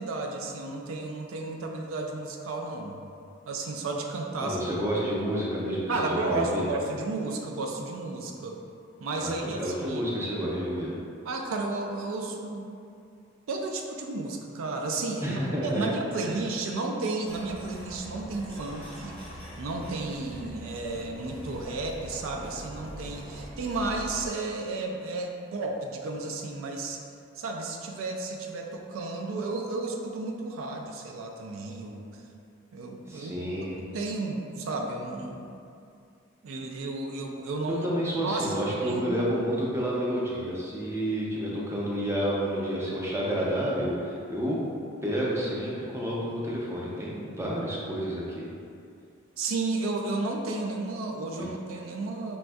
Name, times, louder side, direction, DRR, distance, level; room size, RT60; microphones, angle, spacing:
voice 1, 0.0-3.0 3.5-4.7 5.9-8.6 9.0-10.0 11.3-12.7 13.5-19.2 19.6-27.0 27.4-32.0 32.7-35.5 36.4-37.9 38.2-39.0 49.4-52.4, right 3 dB, 80° right, 2 dB, 0.4 m, -33 dB
voice 2, 4.4-6.7 9.2-10.9 15.2-15.9 16.2-16.4 33.1-33.8 37.7-44.6 45.0-48.5 51.4-51.5, equal, 15° right, -5 dB, 0.4 m, -30 dB
sound 1, 17.2-24.3, equal, 5° left, 0.8 m, -43 dB
4.1 x 2.6 x 2.2 m, 2.4 s
head